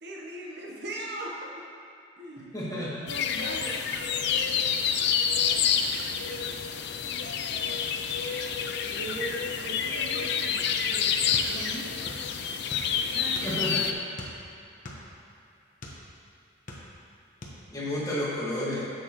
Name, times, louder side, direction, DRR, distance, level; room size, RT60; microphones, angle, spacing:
voice 1, 0.0-1.5 2.2-3.8 8.9-12.1 13.1-13.6, right 1 dB, 55° right, -2 dB, 0.9 m, -40 dB
voice 2, 2.5-3.1 13.4-13.9 17.7-18.9, left 1 dB, 20° left, -7 dB, 1.6 m, -31 dB
sound 1, 3.1-13.9, left 7 dB, 55° left, 0.4 m, -28 dB
sound 2, 11.3-12.3 12.5-13.7 14.1-16.0 16.5-17.1 17.4-17.6, left 1 dB, 40° left, 1.0 m, -42 dB
10.0 x 7.0 x 3.0 m, 2.6 s
head